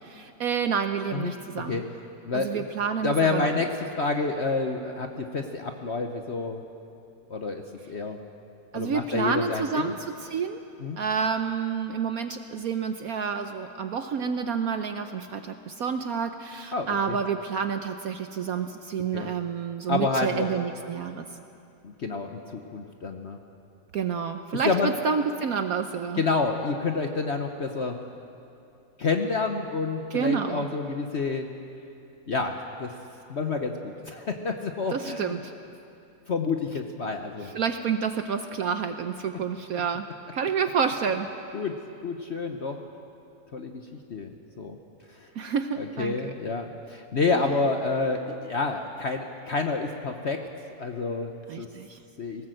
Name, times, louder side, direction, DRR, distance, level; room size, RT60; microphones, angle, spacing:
voice 1, 0.0-1.8 2.3-3.5 8.7-9.9 10.2-10.6 11.0-21.3 23.9-26.2 30.1-30.6 34.9-35.5 37.5-40.1 40.3-41.3 45.4-46.3 51.5-52.0, right 6 dB, 65° right, 8 dB, 1.0 m, -29 dB
voice 2, 1.1-1.8 2.2-2.6 3.0-6.6 7.3-7.6 7.9-8.2 8.7-9.9 10.8-11.0 16.7-17.2 19.1-19.3 19.9-20.5 21.8-23.4 24.6-24.9 26.2-28.0 29.0-31.5 32.3-32.9 33.3-35.3 36.3-37.5 41.5-41.7 42.0-42.8 43.5-43.8 44.1-44.8 45.1-45.3 45.8-50.5 50.8-51.3 51.6-51.7 52.2-52.5, left 4 dB, 45° left, 5 dB, 0.9 m, -29 dB
19.0 x 17.5 x 7.8 m, 2.6 s
omnidirectional pair, 2.1 m